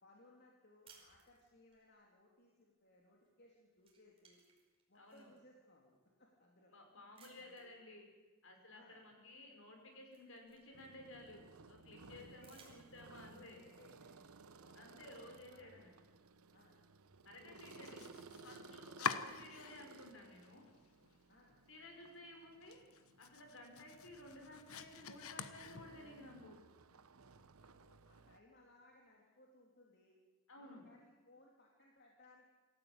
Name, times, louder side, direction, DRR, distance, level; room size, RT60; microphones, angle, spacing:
voice 1, 0.0-4.4 4.9-6.7 7.4-7.6 8.7-9.0 12.1-12.7 13.2-14.2 14.6-15.8 16.5-16.8 17.3-19.2 21.3-21.6 27.2-30.2 30.6-32.5, left 2 dB, 50° left, -2 dB, 3.2 m, -66 dB
sound 1, 0.8-1.8 3.2-3.5 3.8-5.4 6.0-6.1 7.1-7.8 9.2-9.3 9.7-11.2 12.3-13.4, right 5 dB, 25° right, 4.9 m, -66 dB
voice 2, 4.9-5.3 6.7-8.1 8.4-13.6 14.8-15.9 17.2-18.0 18.4-20.7 21.7-22.8 23.2-26.6 30.5-30.9, left 1 dB, 65° left, 3 dB, 5.7 m, -55 dB
sound 2, 10.7-28.4, right 3 dB, 85° right, 0.9 m, -59 dB
Domestic sounds home sounds, 17.5-20.1 20.4-21.2 21.5-21.6 22.0-22.1 22.5-26.2, left 6 dB, 85° left, 1.2 m, -46 dB
26.5 x 14.5 x 8.8 m, 1.2 s
head